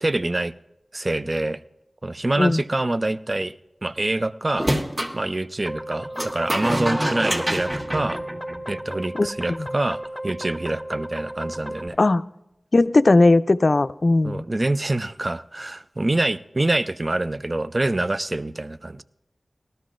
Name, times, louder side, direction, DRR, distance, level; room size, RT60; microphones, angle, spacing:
voice 1, 0.0-0.5 0.9-1.6 2.0-3.5 3.8-4.7 5.1-8.2 8.7-12.0 14.2-19.0, right 2 dB, 45° right, 13 dB, 0.5 m, -25 dB
sound 1, 4.6-5.2 6.2-8.9, equal, 30° right, 1.4 m, -26 dB
sound 2, 5.6-11.9, right 1 dB, ahead, 0.6 m, -34 dB
voice 2, 12.7-14.4, left 2 dB, 60° left, 14 dB, 0.4 m, -17 dB
18.5 x 13.0 x 2.5 m, 0.88 s
cardioid pair, 40°, 0 cm